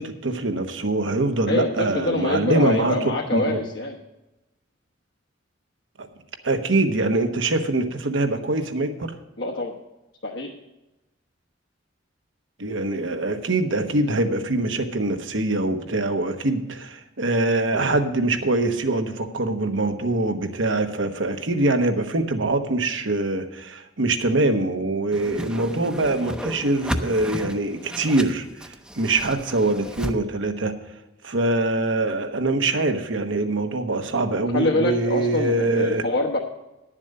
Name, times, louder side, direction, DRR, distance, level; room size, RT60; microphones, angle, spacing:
voice 1, 0.0-3.6 6.0-6.1 6.4-9.1 12.6-30.7 31.2-36.0, right 2 dB, 80° right, 6 dB, 1.1 m, -24 dB
voice 2, 1.5-4.0 9.4-9.7 10.2-10.5 34.5-36.4, left 2 dB, 65° left, -2 dB, 1.2 m, -25 dB
Whoosh swoosh swish, 25.1-30.1, equal, 5° right, 0.6 m, -33 dB
10.5 x 7.4 x 6.5 m, 1.0 s
head